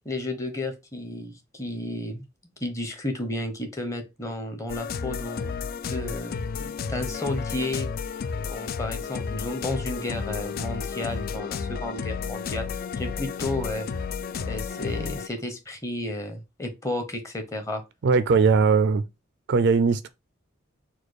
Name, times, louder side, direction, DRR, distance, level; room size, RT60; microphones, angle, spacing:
voice 1, 0.0-2.2 2.6-5.5 5.9-7.9 8.4-12.6 13.0-13.9 14.5-17.8, left 1 dB, 15° left, 0.9 m, -32 dB
sound 1, 4.7-15.3, left 6 dB, 45° left, 0.3 m, -32 dB
voice 2, 18.0-19.0 19.5-20.1, right 5 dB, 60° right, 0.4 m, -19 dB
4.2 x 2.3 x 4.7 m
head